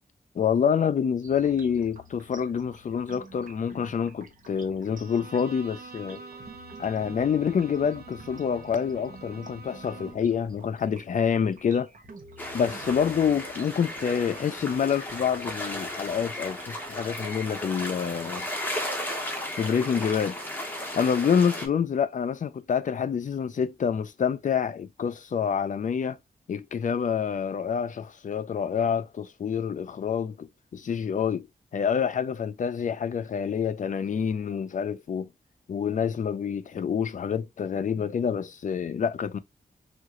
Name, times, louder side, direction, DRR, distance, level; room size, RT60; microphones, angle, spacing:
voice 1, 0.4-6.2 6.8-11.9 12.5-18.5 19.6-20.4 20.9-26.2 26.5-31.5 31.7-35.3 35.7-39.4, left 7 dB, 55° left, 0.4 m, -27 dB
sound 1, 1.2-17.0, right 1 dB, 60° right, 0.8 m, -50 dB
Bowed string instrument, 4.9-10.3, right 4 dB, 85° right, 0.8 m, -46 dB
sound 2, 12.4-21.7, left 1 dB, 10° left, 0.8 m, -35 dB
3.7 x 2.5 x 2.9 m
wide cardioid pair, 175°, 16 cm